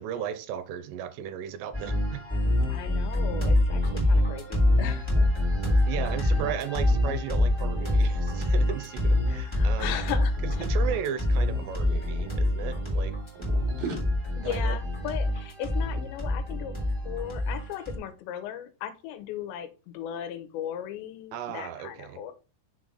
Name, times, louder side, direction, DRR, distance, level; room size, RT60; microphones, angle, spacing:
voice 1, 0.0-2.2 5.8-10.0 10.4-13.1 14.4-14.8 21.3-22.2, right 9 dB, 85° right, 2.8 m, -35 dB
sound 1, 1.7-18.0, left 1 dB, 10° left, 2.0 m, -26 dB
voice 2, 2.7-5.3 6.2-6.4 9.3-10.6 14.3-22.3, left 10 dB, 85° left, 3.1 m, -37 dB
sound 2, 6.2-6.5 6.9-7.1 7.4-9.3 10.0-10.3 10.5-12.3 12.9-14.0, right 4 dB, 50° right, 2.8 m, -41 dB
6.6 x 4.2 x 4.9 m
omnidirectional pair, 5.0 m